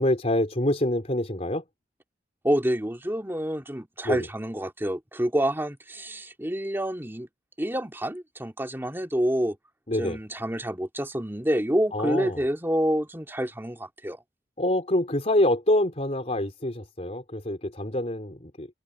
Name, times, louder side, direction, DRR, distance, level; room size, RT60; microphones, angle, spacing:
voice 1, 0.0-1.6 4.0-4.3 9.9-10.2 11.9-12.4 14.6-18.7, left 1 dB, 40° left, 3.8 m, -26 dB
voice 2, 2.4-7.3 7.6-9.6 10.0-14.2, equal, 15° right, 2.6 m, -28 dB
head